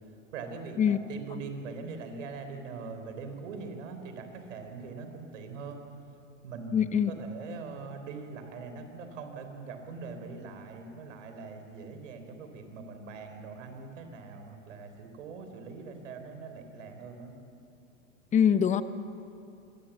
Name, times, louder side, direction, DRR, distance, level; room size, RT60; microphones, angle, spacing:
voice 1, 0.3-5.8 6.4-17.3, right 4 dB, 70° right, 6 dB, 4.0 m, -42 dB
voice 2, 6.7-7.1 18.3-18.8, left 8 dB, 20° left, 12 dB, 0.9 m, -23 dB
25.0 x 18.5 x 7.2 m, 2.7 s
hypercardioid pair, 115°, 40 cm